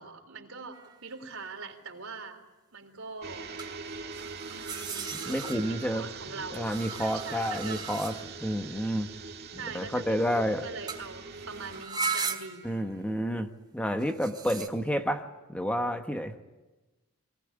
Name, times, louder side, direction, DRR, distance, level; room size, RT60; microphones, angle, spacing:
voice 1, 0.0-2.4 2.7-3.5 4.1-7.8 9.5-12.8, right 4 dB, 80° right, 5 dB, 3.6 m, -43 dB
sound 1, 0.7-1.0 3.6-6.0 6.5-8.5 10.9-11.1 11.4-12.8 14.0-14.7, right 5 dB, 20° right, 2.6 m, -37 dB
sound 2, 3.2-11.9, right 4 dB, 50° right, 2.1 m, -43 dB
voice 2, 5.2-6.1 6.5-8.1 8.4-9.1 9.7-10.6 12.6-13.5 13.7-15.2 15.5-16.3, equal, 5° left, 6 dB, 1.2 m, -29 dB
23.0 x 19.5 x 10.0 m, 1.1 s
head